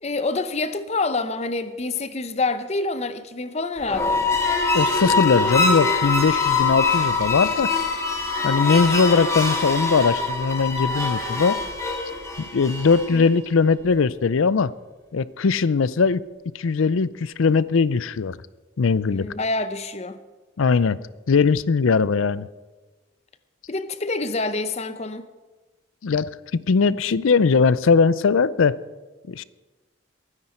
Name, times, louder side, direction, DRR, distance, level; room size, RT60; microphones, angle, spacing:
voice 1, 0.0-4.2 13.1-13.3 19.1-20.2 23.7-25.3, left 3 dB, 30° left, 0.7 m, -27 dB
sound 1, 3.8-13.2, left 3 dB, 15° left, 1.7 m, -23 dB
voice 2, 4.7-7.7 8.4-11.6 12.5-14.7 15.1-16.2 16.5-18.4 18.8-19.3 20.6-21.0 21.3-22.5 26.0-28.8 29.3-29.4, left 5 dB, 80° left, 0.5 m, -20 dB
22.0 x 9.8 x 4.4 m
head